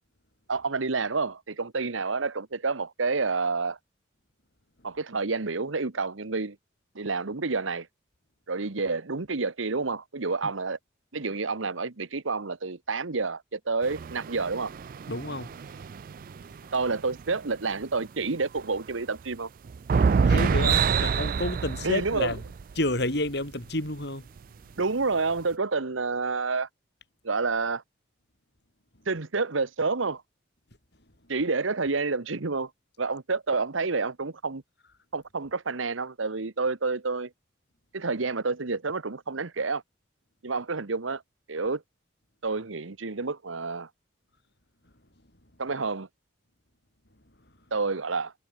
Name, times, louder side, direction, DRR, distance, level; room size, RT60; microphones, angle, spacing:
voice 1, 0.5-3.8 4.8-6.6 6.9-7.9 8.5-10.8 11.1-14.7 16.7-19.5 21.8-22.3 24.8-26.7 27.2-27.8 29.1-30.2 31.3-32.7 33.0-34.6 35.1-37.3 37.9-39.8 40.4-41.2 41.5-41.8 42.4-43.9 45.6-46.1 47.7-48.3, right 4 dB, 85° right, 1.2 m, -29 dB
sound 1, 13.8-17.6 18.0-18.1 18.4-18.9 19.6-23.0 23.8-23.9 24.4-24.5, right 5 dB, 45° right, 0.3 m, -27 dB
voice 2, 15.1-15.8 20.2-22.4 22.8-24.3, left 1 dB, 55° left, 5.2 m, -30 dB
head